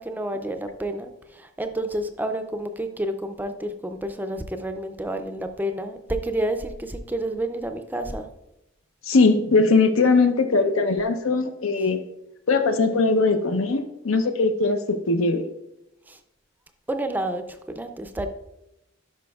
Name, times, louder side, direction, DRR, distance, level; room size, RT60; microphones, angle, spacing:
voice 1, 0.0-8.3 16.1-16.2 16.9-18.3, right 1 dB, 10° right, 7 dB, 0.4 m, -30 dB
voice 2, 9.0-12.0 12.5-14.8 15.1-15.4, left 3 dB, 90° left, 8 dB, 0.7 m, -20 dB
11.0 x 5.2 x 2.3 m, 0.87 s
head